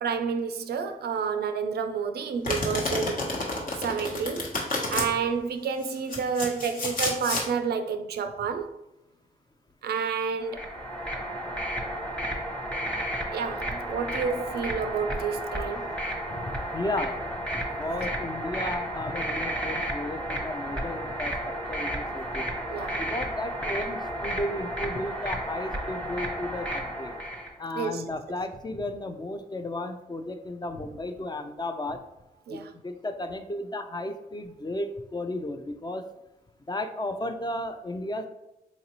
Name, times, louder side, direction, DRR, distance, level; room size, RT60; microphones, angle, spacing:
voice 1, 0.0-3.2 3.8-4.5 4.9-8.7 9.8-10.6 13.3-15.9 22.7-23.0 27.7-28.0 32.5-32.7, right 6 dB, 70° right, 0.4 m, -29 dB
Domestic sounds home sounds, 2.4-5.1 5.8-7.5, left 2 dB, 55° left, 1.0 m, -30 dB
sound 1, 10.4-27.5, right 1 dB, 5° left, 0.9 m, -32 dB
voice 2, 16.4-17.3 17.5-22.5 23.0-27.2 27.6-32.0 32.5-36.0 36.7-38.3, left 1 dB, 25° left, 0.4 m, -34 dB
4.0 x 2.6 x 2.9 m
cardioid pair, 55°, 17 cm